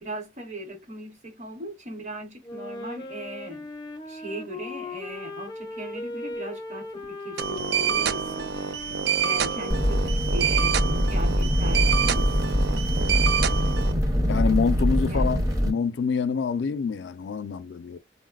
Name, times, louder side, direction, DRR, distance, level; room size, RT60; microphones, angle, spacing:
voice 1, 0.0-3.7 4.1-8.4 8.8-8.9 9.2-12.3 15.1-15.3, right 1 dB, 40° right, 0.9 m, -38 dB
Wind instrument woodwind instrument, 2.4-10.8, left 2 dB, 25° left, 0.5 m, -38 dB
sound 1, 7.4-13.9, right 8 dB, 70° right, 0.3 m, -27 dB
sound 2, 9.7-15.7, equal, 20° right, 0.7 m, -23 dB
voice 2, 14.3-15.4 15.7-18.0, left 5 dB, 85° left, 0.4 m, -26 dB
3.8 x 2.0 x 2.3 m
head